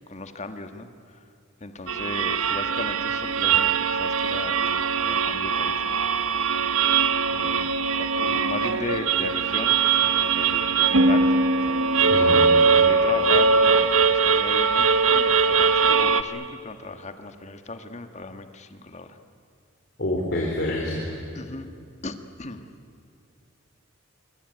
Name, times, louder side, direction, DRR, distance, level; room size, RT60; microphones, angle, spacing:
voice 1, 0.1-1.2 1.6-6.1 7.3-11.3 11.9-12.4 12.7-19.2 21.3-21.7 22.0-22.6, left 2 dB, 35° left, 8 dB, 1.5 m, -36 dB
sound 1, 1.9-16.2, right 5 dB, 80° right, 1.0 m, -21 dB
voice 2, 12.1-12.5 20.0-21.1, left 1 dB, 50° left, -2 dB, 4.0 m, -27 dB
25.0 x 23.5 x 9.5 m, 2.3 s
head